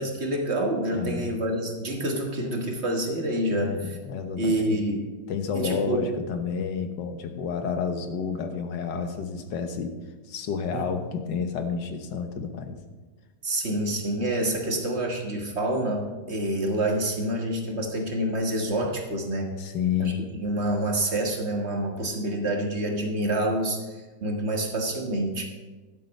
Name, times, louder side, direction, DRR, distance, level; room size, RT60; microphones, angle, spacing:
voice 1, 0.0-4.0 4.4-5.1 5.5-6.0 10.7-10.9 13.4-19.5 20.0-20.1 20.4-25.5, right 1 dB, 40° right, 2 dB, 1.6 m, -27 dB
voice 2, 0.9-1.4 3.5-4.8 5.3-9.9 10.2-12.8 19.6-20.2, left 6 dB, 90° left, 6 dB, 1.7 m, -30 dB
11.5 x 7.9 x 5.4 m, 1.3 s
omnidirectional pair, 1.8 m